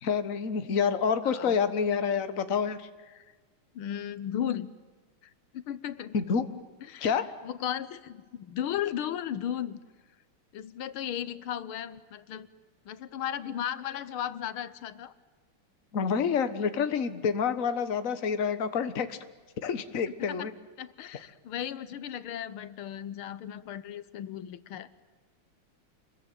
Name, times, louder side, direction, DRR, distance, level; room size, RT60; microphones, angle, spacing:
voice 1, 0.0-2.9 6.1-6.5 7.0-7.3 15.9-19.2 19.6-20.5, left 6 dB, 45° left, 10 dB, 1.6 m, -28 dB
voice 2, 1.2-1.6 3.1-3.3 3.8-4.7 5.5-6.2 6.8-7.1 7.4-9.8 10.5-12.5 12.9-15.1 20.3-20.5 20.8-24.9, left 10 dB, 85° left, 15 dB, 1.9 m, -35 dB
28.5 x 21.5 x 9.2 m, 1.3 s
omnidirectional pair, 2.3 m